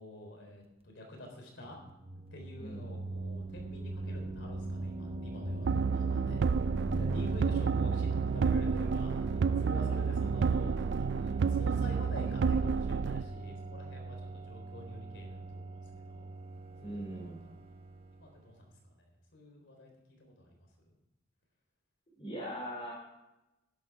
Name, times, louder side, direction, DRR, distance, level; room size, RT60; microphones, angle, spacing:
voice 1, 0.0-1.8 2.3-6.5 7.0-16.4 16.8-17.6 18.2-19.9 20.2-20.9, left 1 dB, 70° left, 2 dB, 3.8 m, -48 dB
sound 1, 1.7-18.4, right 2 dB, 30° right, 0.9 m, -40 dB
sound 2, 5.6-13.2, right 5 dB, 65° right, 0.4 m, -30 dB
voice 2, 16.8-17.4 22.2-22.9, right 1 dB, 30° left, -4 dB, 3.0 m, -41 dB
11.5 x 11.0 x 4.7 m, 0.96 s
head